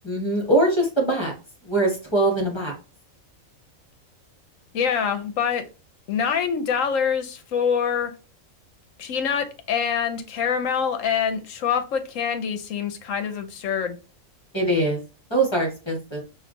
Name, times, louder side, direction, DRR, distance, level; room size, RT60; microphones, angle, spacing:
voice 1, 0.0-1.3 1.6-2.7 14.5-15.0 15.3-16.2, right 1 dB, 20° left, 1.5 m, -22 dB
voice 2, 4.7-5.6 6.1-8.1 9.0-14.0, left 7 dB, 70° left, 1.0 m, -25 dB
5.7 x 2.7 x 2.6 m
omnidirectional pair, 1.4 m